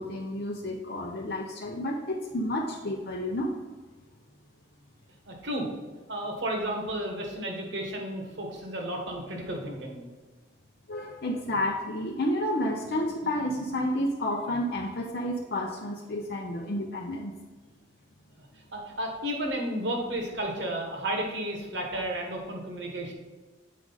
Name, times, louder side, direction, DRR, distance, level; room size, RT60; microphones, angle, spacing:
voice 1, 0.0-3.5 10.9-17.3, left 1 dB, 55° left, 0 dB, 0.6 m, -30 dB
voice 2, 5.3-5.7 6.1-10.0 18.7-23.1, right 1 dB, 65° right, 2 dB, 1.3 m, -32 dB
7.7 x 4.7 x 3.9 m, 1.3 s
head